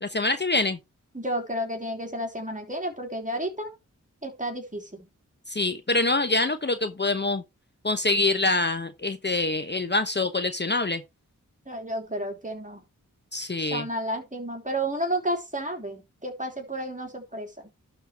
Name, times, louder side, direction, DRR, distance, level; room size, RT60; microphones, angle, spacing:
voice 1, 0.0-0.8 5.5-7.4 7.8-11.0 13.3-13.9, left 2 dB, 35° left, 1.0 m, -25 dB
voice 2, 1.1-3.7 4.2-5.0 11.7-12.8 13.7-17.5, right 1 dB, 25° right, 3.4 m, -31 dB
11.5 x 4.4 x 4.6 m
wide cardioid pair, 65°, 32 cm